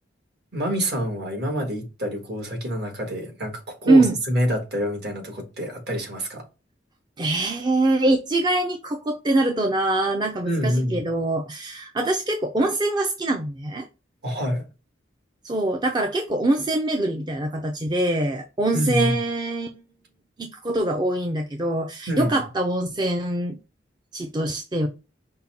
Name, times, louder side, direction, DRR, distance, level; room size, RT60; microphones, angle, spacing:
voice 1, 0.5-6.5 10.4-11.0 14.2-14.6 18.7-19.2 22.1-22.4, equal, 60° right, 1.6 m, -27 dB
voice 2, 7.2-13.9 15.4-19.7 20.4-23.6 24.1-24.9, right 2 dB, 25° right, 0.4 m, -23 dB
5.4 x 2.2 x 4.2 m
head